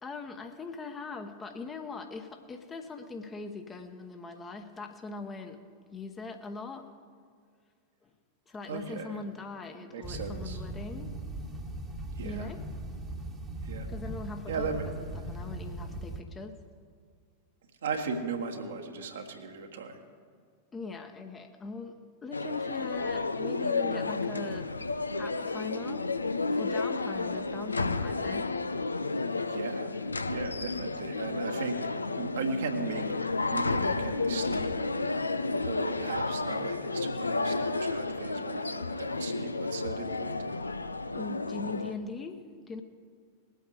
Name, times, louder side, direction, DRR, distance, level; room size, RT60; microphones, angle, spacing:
voice 1, 0.0-5.6 5.9-6.9 8.0-8.1 8.5-11.1 12.2-12.6 13.9-16.6 20.7-24.7 25.2-26.1 26.5-28.6 41.1-42.8, left 4 dB, 20° left, 6 dB, 1.0 m, -41 dB
voice 2, 8.7-9.2 9.9-10.6 12.2-12.5 13.6-13.9 14.5-14.9 17.8-20.0 29.4-29.9 30.3-31.8 32.1-33.1 33.5-34.7 35.6-40.5, right 4 dB, 65° right, 4 dB, 1.4 m, -37 dB
sound 1, 10.0-16.2, right 1 dB, 15° right, 1.3 m, -39 dB
sound 2, 22.3-41.9, left 3 dB, 80° left, 0.5 m, -32 dB
20.5 x 8.4 x 4.9 m, 2.1 s
figure-of-eight pair, 90°, 0 cm